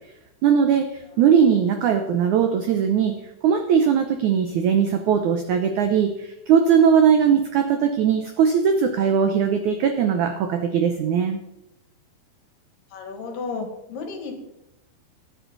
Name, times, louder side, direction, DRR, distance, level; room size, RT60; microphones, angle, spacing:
voice 1, 0.4-11.4, right 7 dB, 90° right, 6 dB, 1.6 m, -20 dB
voice 2, 12.9-14.3, left 4 dB, 65° left, 4 dB, 3.2 m, -33 dB
17.5 x 8.4 x 4.0 m, 0.88 s
omnidirectional pair, 4.6 m